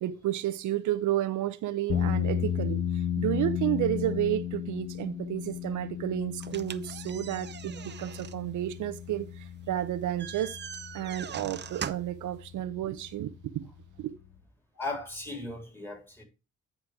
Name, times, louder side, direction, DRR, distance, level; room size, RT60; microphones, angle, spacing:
voice 1, 0.0-10.6 10.9-13.7 14.0-14.1, right 12 dB, 75° right, 0.7 m, -31 dB
sound 1, 1.9-14.4, left 9 dB, 40° left, 1.5 m, -35 dB
sound 2, 6.4-12.2, right 8 dB, 35° right, 0.6 m, -42 dB
voice 2, 14.8-16.2, left 2 dB, 5° left, 3.5 m, -37 dB
9.9 x 4.4 x 4.8 m
cardioid pair, 90°, 30 cm